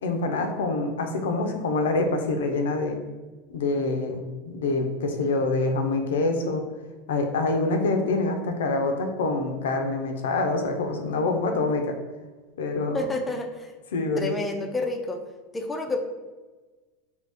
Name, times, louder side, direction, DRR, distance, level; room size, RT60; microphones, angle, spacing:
voice 1, 0.0-3.0 3.5-6.6 7.1-11.9 12.6-13.1 13.9-14.4, left 3 dB, 85° left, 5 dB, 0.5 m, -26 dB
voice 2, 12.9-13.7 14.2-15.2 15.5-16.0, left 2 dB, 10° left, 3 dB, 0.4 m, -29 dB
2.8 x 2.7 x 3.5 m, 1.3 s
supercardioid pair, 120°, 0 cm